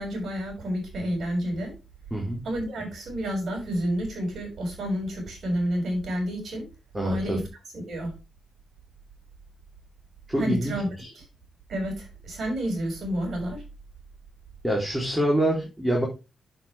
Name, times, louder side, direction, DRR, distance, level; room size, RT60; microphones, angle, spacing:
voice 1, 0.0-1.7 2.4-6.6 7.0-7.4 7.8-8.1 10.4-10.9 11.1-11.2 11.7-13.6, equal, 65° right, 6.3 m, -29 dB
voice 2, 2.1-2.4 6.9-7.4 10.3-10.7 11.0-11.1 14.6-16.1, right 1 dB, 10° right, 3.6 m, -25 dB
8.4 x 8.0 x 3.5 m
cardioid pair, 60°, 0 cm